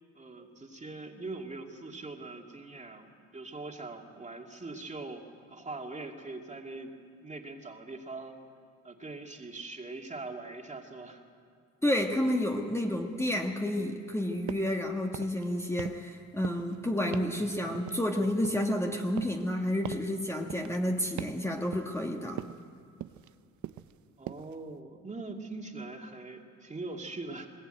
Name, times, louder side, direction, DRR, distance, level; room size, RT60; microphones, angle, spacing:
voice 1, 0.1-6.9 7.2-8.3 8.8-11.2 24.2-27.5, right 3 dB, 25° right, 2 dB, 2.4 m, -42 dB
voice 2, 11.8-22.4, left 1 dB, 10° left, 1 dB, 1.7 m, -30 dB
sound 1, 14.5-14.8 15.1-15.5 15.8-16.2 16.4-16.8 17.1-17.4 17.7-18.8 19.2-19.5 19.8-20.1 20.5-20.8 21.2-21.5 21.7-22.1 22.4-22.7 23.0-23.3 23.6-24.0 24.3-24.6, right 13 dB, 70° right, 0.7 m, -41 dB
21.0 x 19.0 x 9.1 m, 2.3 s
cardioid pair, 90°, 30 cm